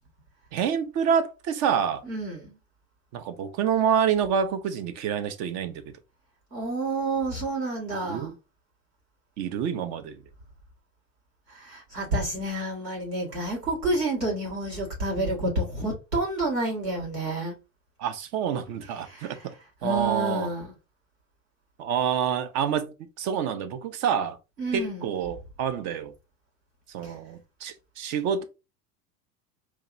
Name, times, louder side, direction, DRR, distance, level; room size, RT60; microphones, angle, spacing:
voice 1, 0.5-2.0 3.1-5.9 8.0-8.3 9.4-10.2 18.0-19.5 19.8-20.5 21.8-24.4 24.7-26.1 26.9-28.4, right 7 dB, 35° right, 0.6 m, -27 dB
voice 2, 2.0-2.6 6.5-8.3 11.5-17.6 19.0-19.5 19.8-20.7 24.6-25.2 27.0-27.1, right 2 dB, 90° right, 1.8 m, -29 dB
4.5 x 2.8 x 2.5 m
figure-of-eight pair, 80°, 48 cm